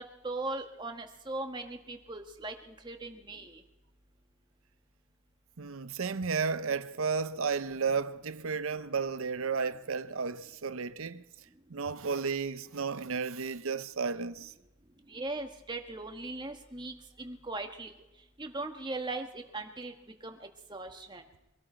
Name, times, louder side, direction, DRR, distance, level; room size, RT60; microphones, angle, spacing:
voice 1, 0.0-3.6 15.1-17.9 18.4-19.9 20.2-20.4 20.7-21.2, right 2 dB, 20° right, 1.3 m, -39 dB
voice 2, 5.6-11.2 11.7-14.5, right 5 dB, 65° right, 0.7 m, -33 dB
24.0 x 13.0 x 4.4 m
head